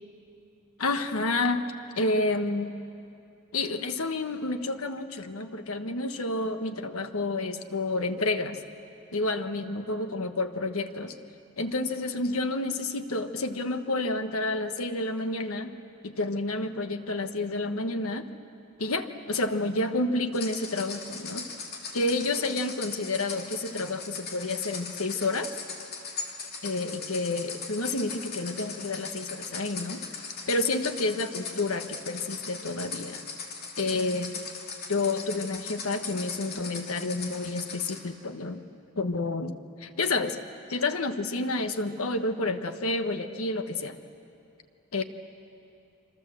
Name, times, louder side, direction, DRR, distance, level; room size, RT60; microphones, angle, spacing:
voice 1, 0.8-2.7 3.5-8.6 9.1-11.1 11.6-15.7 16.0-18.3 18.8-21.4 21.9-25.5 26.6-30.0 30.5-33.2 33.8-34.4 34.9-38.6 38.9-39.5 39.8-40.4 40.7-44.0 44.9-45.0, left 2 dB, 85° left, 7 dB, 1.4 m, -29 dB
sound 1, 20.3-38.0, left 5 dB, 45° left, 2.9 m, -39 dB
27.0 x 25.5 x 7.7 m, 2.7 s
head